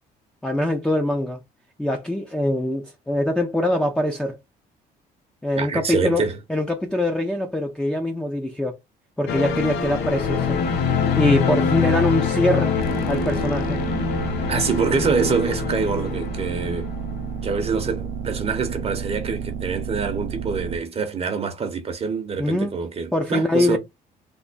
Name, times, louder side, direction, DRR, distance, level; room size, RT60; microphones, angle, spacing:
voice 1, 0.4-1.4 1.8-4.4 5.4-6.2 6.5-8.8 9.2-10.6 11.2-12.8 13.1-13.8 22.4-22.7 23.1-23.8, left 1 dB, 5° left, 0.6 m, -23 dB
voice 2, 5.6-6.4 14.5-16.9 17.4-23.8, right 5 dB, 35° right, 0.8 m, -25 dB
sound 1, 9.3-18.4 18.7-18.8, left 6 dB, 75° left, 0.8 m, -25 dB
sound 2, 12.8-20.8, right 7 dB, 65° right, 0.5 m, -31 dB
3.5 x 2.1 x 3.9 m
cardioid pair, 110°, 17 cm